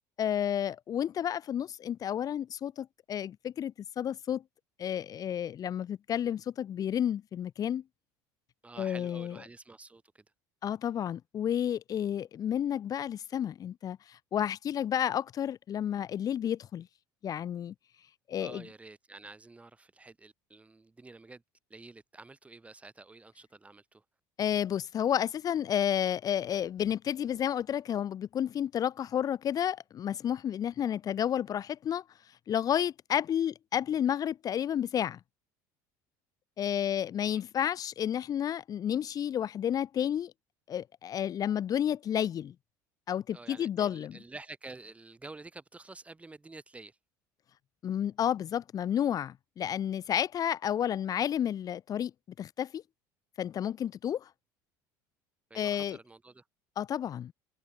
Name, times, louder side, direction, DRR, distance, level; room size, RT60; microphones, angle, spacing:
voice 1, 0.2-4.4 4.8-7.8 8.8-9.4 10.6-16.9 17.2-17.7 18.3-18.6 24.4-32.0 32.5-35.2 36.6-40.3 40.7-42.5 43.1-44.2 47.8-52.1 52.4-52.8 53.4-54.3 55.5-56.0 56.8-57.3, left 9 dB, 40° left, 2.6 m, -31 dB
voice 2, 8.6-10.2 18.4-21.4 21.7-24.0 37.2-37.4 43.3-47.0 55.5-56.4, right 3 dB, 15° right, 7.7 m, -49 dB
supercardioid pair, 100°, 9 cm